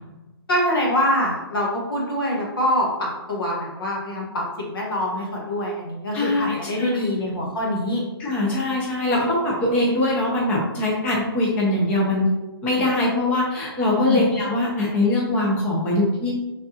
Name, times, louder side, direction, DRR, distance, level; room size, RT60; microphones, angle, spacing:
voice 1, 0.5-8.0 13.9-14.3, left 1 dB, 60° left, -2 dB, 1.3 m, -24 dB
voice 2, 6.1-7.0 8.2-12.3 12.6-16.3, left 2 dB, 10° left, -4 dB, 0.5 m, -22 dB
5.3 x 3.5 x 2.8 m, 1.1 s
hypercardioid pair, 170°, 13 cm